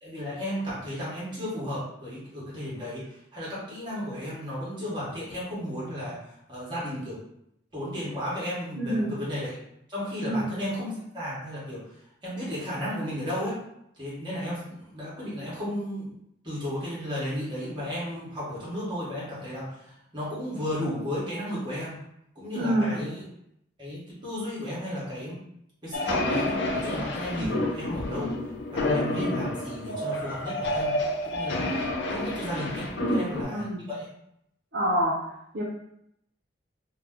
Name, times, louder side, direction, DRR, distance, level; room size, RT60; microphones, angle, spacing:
voice 1, 0.0-6.2 6.5-7.2 7.7-9.6 9.9-11.8 12.2-13.6 14.0-16.1 16.4-22.0 22.3-23.2 23.8-25.3 25.8-28.3 28.7-31.0 31.2-34.1, equal, 25° right, -8 dB, 1.3 m, -34 dB
voice 2, 8.8-9.2 10.3-10.5 22.5-23.0 27.4-27.6 33.0-33.9 34.7-35.2 35.5-35.6, right 1 dB, 60° right, -4 dB, 0.6 m, -27 dB
sound 1, 25.9-33.4, left 1 dB, 70° left, 0.5 m, -29 dB
3.1 x 2.0 x 3.5 m, 0.77 s
head